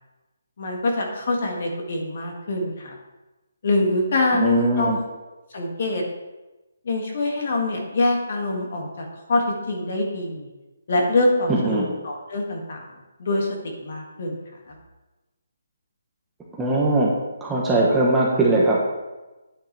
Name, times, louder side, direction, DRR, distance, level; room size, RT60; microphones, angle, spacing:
voice 1, 0.6-2.9 3.6-5.0 5.5-6.0 6.8-10.5 10.9-12.9 13.2-14.4 14.7-14.8, left 2 dB, 45° left, 1 dB, 2.1 m, -24 dB
voice 2, 4.4-5.0 11.5-11.9 16.6-17.1 17.4-18.8, right 2 dB, 5° right, -5 dB, 1.1 m, -20 dB
9.6 x 9.0 x 3.4 m, 1.1 s
hypercardioid pair, 170°, 0 cm